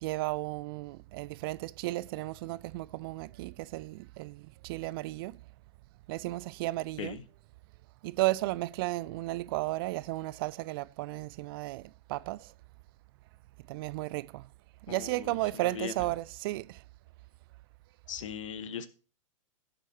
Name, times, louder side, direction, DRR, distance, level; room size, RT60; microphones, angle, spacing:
voice 1, 0.0-5.4 6.1-7.2 8.0-11.8 12.1-12.5 13.7-14.4 14.9-16.8, right 19 dB, 40° right, 0.4 m, -34 dB
voice 2, 14.9-16.1 18.1-18.9, left 7 dB, 65° left, 1.2 m, -39 dB
16.5 x 7.6 x 2.9 m
figure-of-eight pair, 100°, 18 cm